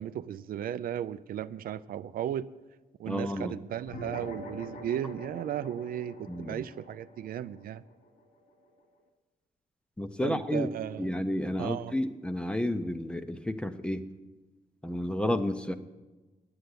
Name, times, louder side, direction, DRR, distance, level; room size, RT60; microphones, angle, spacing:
voice 1, 0.0-2.5 3.0-7.8 10.2-11.1 11.6-11.9, right 10 dB, 75° right, 14 dB, 0.4 m, -35 dB
voice 2, 3.1-3.6 6.3-6.6 10.0-10.7 11.0-14.0 14.8-15.7, left 1 dB, 5° left, 10 dB, 0.5 m, -31 dB
sound 1, 3.9-8.7, left 1 dB, 65° left, 2.3 m, -44 dB
10.5 x 8.0 x 9.6 m, 1.2 s
wide cardioid pair, 170°, 15 cm